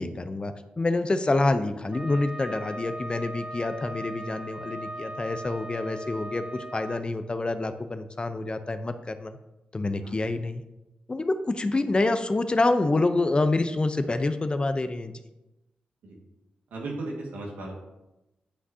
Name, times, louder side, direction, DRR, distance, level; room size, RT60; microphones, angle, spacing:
voice 1, 0.0-9.4 9.7-10.6 11.1-15.2, left 2 dB, 30° left, 10 dB, 0.6 m, -27 dB
Wind instrument woodwind instrument, 1.9-7.0, right 1 dB, 35° right, 1.3 m, -39 dB
voice 2, 16.7-17.7, right 2 dB, 85° right, -1 dB, 1.7 m, -35 dB
9.9 x 5.9 x 2.8 m, 0.96 s
cardioid pair, 55°, 3 cm